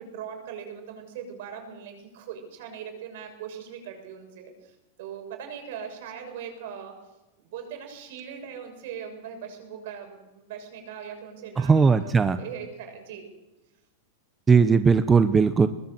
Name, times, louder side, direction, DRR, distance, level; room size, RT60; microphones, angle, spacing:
voice 1, 0.0-7.0 7.4-13.3, right 8 dB, 60° right, 4 dB, 7.0 m, -40 dB
voice 2, 11.6-12.4 14.5-15.7, right 5 dB, 15° right, 11 dB, 0.7 m, -18 dB
23.0 x 20.5 x 7.6 m, 1.0 s
supercardioid pair, 155°, 0 cm